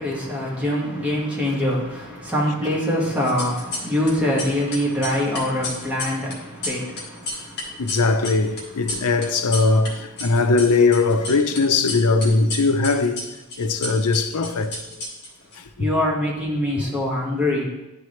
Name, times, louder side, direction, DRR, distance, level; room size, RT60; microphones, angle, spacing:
voice 1, 0.0-8.0 8.9-9.0 10.2-10.3 15.8-17.7, left 1 dB, 5° right, 1.6 m, -24 dB
sound 1, 3.2-4.1 4.4-9.9 10.2-11.6 11.9-15.6, left 2 dB, 50° left, 1.8 m, -32 dB
voice 2, 7.8-13.3 13.6-14.8, left 3 dB, 80° left, 0.6 m, -20 dB
10.5 x 4.8 x 3.2 m
head